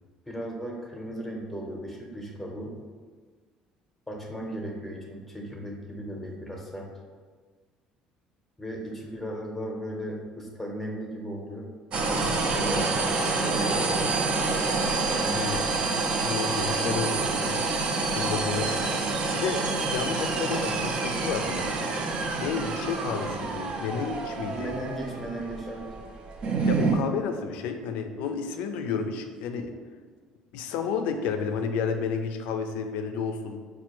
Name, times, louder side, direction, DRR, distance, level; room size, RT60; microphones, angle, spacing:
voice 1, 0.3-2.7 4.1-6.9 8.6-11.7 12.1-14.2 24.5-25.9, right 1 dB, 5° left, -1 dB, 0.7 m, -36 dB
sound 1, 11.9-27.0, right 3 dB, 50° right, 0.4 m, -27 dB
voice 2, 15.3-17.7 18.1-18.8 19.3-21.8 22.4-24.7 26.7-29.7 30.5-33.6, left 6 dB, 85° left, 6 dB, 0.3 m, -31 dB
4.4 x 2.2 x 2.9 m, 1.5 s
cardioid pair, 115°, 2 cm